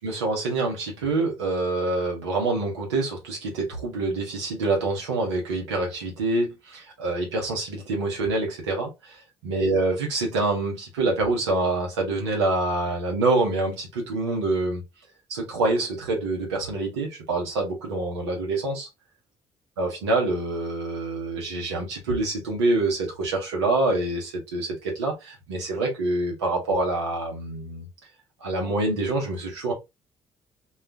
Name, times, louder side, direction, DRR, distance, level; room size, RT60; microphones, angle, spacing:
voice 1, 0.0-14.8 15.3-18.9 19.8-27.9 28.4-29.7, right 2 dB, 80° right, 0.9 m, -26 dB
2.3 x 2.3 x 3.4 m
figure-of-eight pair, 40°, 15 cm